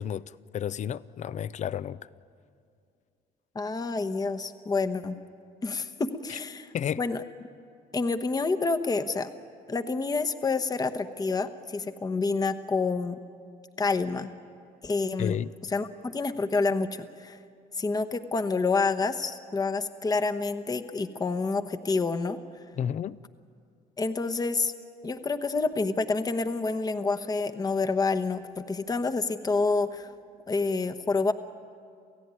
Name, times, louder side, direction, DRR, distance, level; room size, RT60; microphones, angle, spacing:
voice 1, 0.0-2.0 6.7-7.0 15.2-15.5 22.8-23.2, left 9 dB, 45° left, 0.6 m, -31 dB
voice 2, 3.5-5.2 5.6-6.7 7.0-7.2 7.9-9.3 9.7-13.2 13.8-14.3 14.8-15.4 15.7-17.4 17.8-22.4 24.0-24.7 25.0-30.1 30.5-31.3, left 3 dB, 20° left, 1.1 m, -28 dB
28.5 x 15.5 x 9.6 m
cardioid pair, 110°, 17 cm